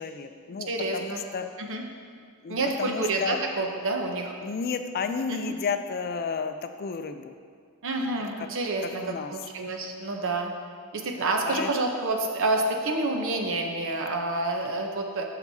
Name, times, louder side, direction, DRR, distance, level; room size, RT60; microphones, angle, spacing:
voice 1, 0.0-1.5 2.4-3.4 4.4-7.3 8.8-9.3 11.4-11.7, left 5 dB, 45° left, 8 dB, 0.4 m, -32 dB
voice 2, 0.7-1.2 1.6-1.8 2.5-4.3 5.3-5.5 7.8-10.5 10.9-15.2, right 2 dB, 60° right, 2 dB, 0.8 m, -28 dB
11.5 x 5.9 x 2.8 m, 2.1 s
head